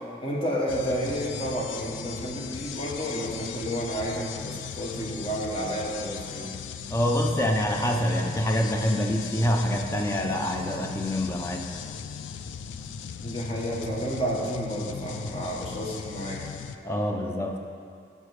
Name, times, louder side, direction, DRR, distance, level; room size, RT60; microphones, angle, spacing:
voice 1, 0.0-6.6 13.2-16.4, equal, 30° left, -3 dB, 1.0 m, -31 dB
sound 1, 0.7-16.8, left 7 dB, 85° left, 0.3 m, -38 dB
voice 2, 6.9-11.7 16.8-17.6, equal, 15° left, 2 dB, 0.4 m, -26 dB
5.5 x 4.9 x 6.3 m, 2.3 s
head